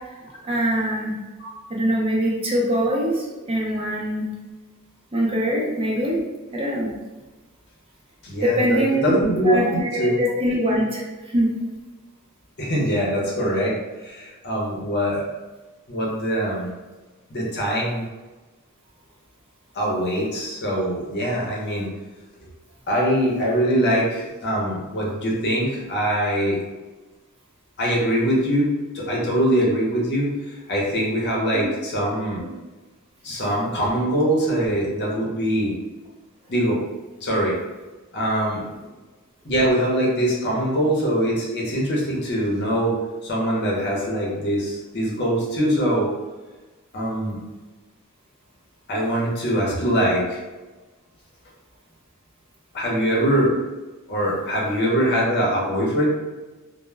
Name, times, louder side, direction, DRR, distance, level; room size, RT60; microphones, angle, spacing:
voice 1, 0.4-1.1 1.7-4.3 5.1-6.2 6.5-6.9 8.4-9.1 9.4-11.0 11.3-11.5 31.5-31.7, equal, 25° right, -4 dB, 0.5 m, -23 dB
voice 2, 8.2-10.2 10.9-11.0 12.6-15.3 15.9-16.7 17.3-18.1 19.7-21.9 22.9-26.6 27.8-28.7 28.9-30.3 30.7-32.5 33.2-35.7 36.5-36.8 37.2-37.5 38.1-38.6 39.4-42.9 43.2-46.1 46.9-47.4 48.9-50.4 52.7-53.6 54.1-56.1, equal, 50° left, -3 dB, 0.7 m, -23 dB
2.1 x 2.1 x 3.2 m, 1.2 s
head